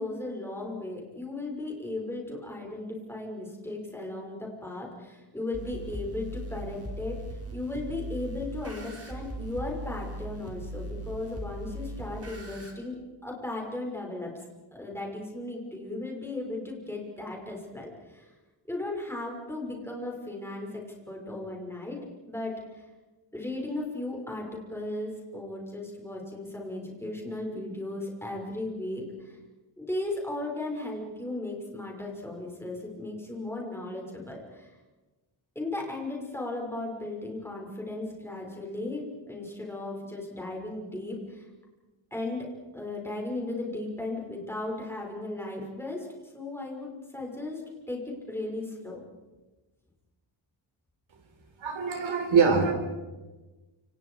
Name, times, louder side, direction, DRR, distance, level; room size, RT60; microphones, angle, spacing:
voice 1, 0.0-14.3 14.7-18.3 18.7-22.0 22.3-22.6 23.3-29.4 29.8-34.7 35.5-41.5 42.1-46.1 46.3-47.6 47.9-49.0, left 2 dB, 5° left, -1 dB, 5.8 m, -36 dB
sound 1, 5.5-12.7, right 1 dB, 30° right, 4.4 m, -39 dB
voice 2, 51.6-52.7, right 5 dB, 75° right, 4 dB, 4.4 m, -23 dB
29.0 x 27.5 x 4.9 m, 1.2 s
wide cardioid pair, 155°, 47 cm